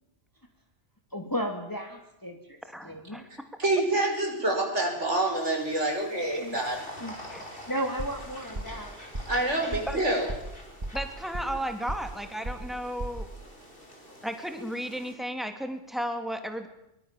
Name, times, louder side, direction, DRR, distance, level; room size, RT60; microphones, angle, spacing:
voice 1, 1.1-2.6 2.8-3.2 6.4-6.6 7.0-7.1 7.7-8.9, equal, 15° left, 3 dB, 2.5 m, -34 dB
voice 2, 2.7-3.2 7.3-7.4 9.9-10.0 10.9-13.3 14.2-16.7, equal, ahead, 7 dB, 2.7 m, -34 dB
voice 3, 3.6-6.8 9.3-10.3, right 2 dB, 75° right, 2 dB, 6.0 m, -27 dB
sound 1, 5.3-15.1, left 1 dB, 50° left, 5.4 m, -47 dB
sound 2, 8.0-8.3 8.5-8.8 9.1-9.4 9.7-10.0 10.3-10.5 10.8-11.6 11.9-12.2 12.4-12.7 13.0-13.3, right 1 dB, 30° right, 2.3 m, -35 dB
23.0 x 22.0 x 7.4 m, 0.85 s
omnidirectional pair, 1.2 m